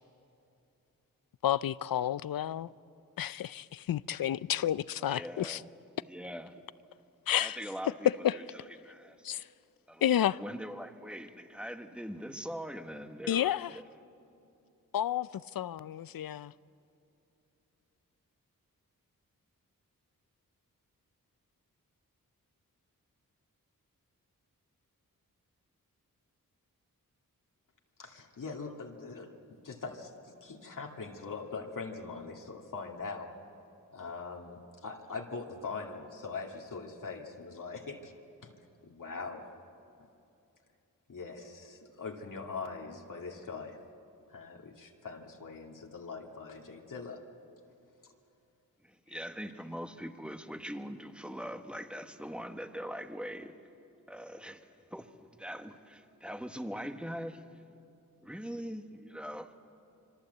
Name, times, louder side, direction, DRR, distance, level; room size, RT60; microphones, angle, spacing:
voice 1, 1.4-2.7 3.2-5.6 7.3-7.6 8.0-8.4 9.2-9.4 10.0-10.4 13.3-13.8 14.9-16.5, left 11 dB, 85° left, 0.6 m, -30 dB
voice 2, 5.0-5.8 6.1-6.7 7.4-9.3 9.9-10.1 10.4-13.8 48.8-53.6 54.1-55.1 55.4-57.4 58.2-59.5, equal, 5° right, 1.4 m, -42 dB
voice 3, 28.0-33.3 33.9-38.1 38.4-38.5 38.8-39.5 41.1-43.8 44.3-47.2 48.0-48.1 49.1-49.2, left 4 dB, 65° left, 2.3 m, -42 dB
26.5 x 24.5 x 8.0 m
wide cardioid pair, 90°, 34 cm